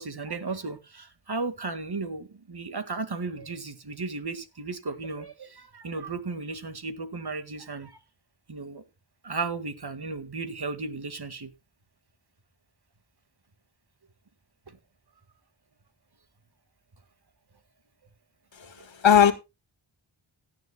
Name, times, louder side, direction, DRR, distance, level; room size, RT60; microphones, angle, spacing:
voice 1, 0.0-7.9 8.5-8.8 9.2-11.5, right 3 dB, 50° right, 1.9 m, -35 dB
voice 2, 18.6-19.3, left 9 dB, 65° left, 1.7 m, -19 dB
17.0 x 10.0 x 2.2 m
wide cardioid pair, 65°, 49 cm